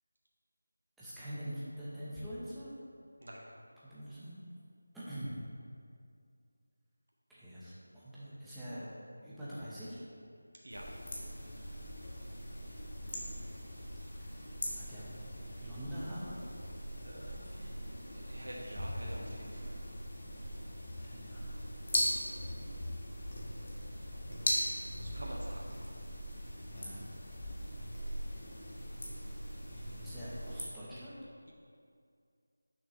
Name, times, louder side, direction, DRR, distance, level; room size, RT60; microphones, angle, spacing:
voice 1, 1.0-2.7 3.8-4.4 4.9-5.4 7.3-8.9 9.2-10.0 14.2-14.4 14.8-15.1 15.6-16.4 21.0-21.6 24.4-24.5 26.7-27.1 29.8-31.1, equal, ahead, -13 dB, 0.9 m, -44 dB
voice 2, 3.2-3.6 10.6-10.9 11.5-11.8 17.0-19.8 25.0-25.7, equal, 90° right, -2 dB, 1.2 m, -48 dB
sound 1, 10.7-30.6, equal, 35° left, 1.6 m, -40 dB
9.9 x 6.5 x 3.1 m, 2.3 s
figure-of-eight pair, 175°, 0 cm